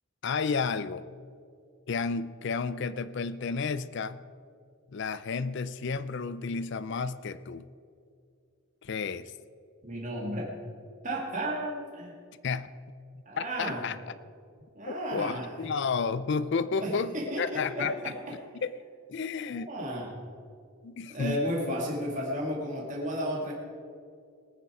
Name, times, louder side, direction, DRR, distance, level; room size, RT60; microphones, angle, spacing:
voice 1, 0.2-1.0 1.9-4.2 4.9-7.7 8.8-9.3 12.4-12.7 13.4-14.0 14.9-18.1 18.6-18.7 19.1-19.7 20.8-21.4, left 5 dB, 50° left, 15 dB, 0.4 m, -31 dB
voice 2, 9.8-10.5 11.0-12.1 13.3-13.8 14.7-15.6 16.8-18.4 19.5-20.2 21.1-23.5, equal, 35° right, -2 dB, 2.1 m, -33 dB
19.5 x 9.6 x 4.8 m, 2.3 s
head